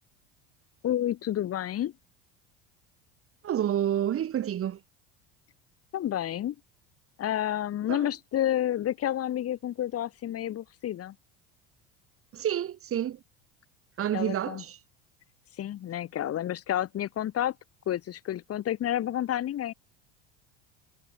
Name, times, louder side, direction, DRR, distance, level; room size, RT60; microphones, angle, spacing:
voice 1, 0.8-1.9 5.9-6.6 7.2-11.2 14.1-14.6 15.6-17.5 17.9-19.7, left 11 dB, 50° left, 5.1 m, -30 dB
voice 2, 3.4-4.8 7.9-8.1 12.3-13.2 14.0-14.8, right 10 dB, 45° right, 5.1 m, -29 dB
supercardioid pair, 100°, 32 cm